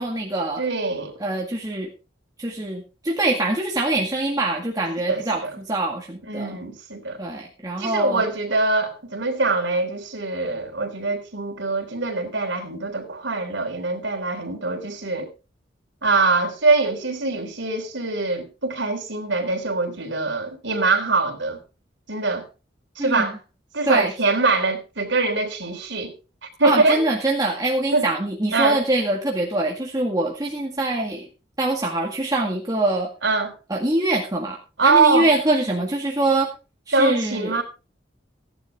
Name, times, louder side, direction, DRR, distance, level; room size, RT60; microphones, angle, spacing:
voice 1, 0.0-0.6 1.2-1.9 2.4-6.6 7.2-8.2 23.0-23.3 23.9-24.1 26.6-31.3 31.6-33.1 33.7-36.5 36.9-37.5, right 2 dB, 20° right, 2.0 m, -24 dB
voice 2, 0.6-1.2 5.1-5.5 6.3-7.2 7.8-15.3 16.0-21.6 22.1-22.4 23.0-23.4 23.7-26.1 26.4-27.0 27.9-28.1 28.5-28.8 33.2-33.6 34.8-35.3 36.9-37.6, right 3 dB, 80° right, 3.7 m, -23 dB
15.5 x 11.0 x 3.7 m
head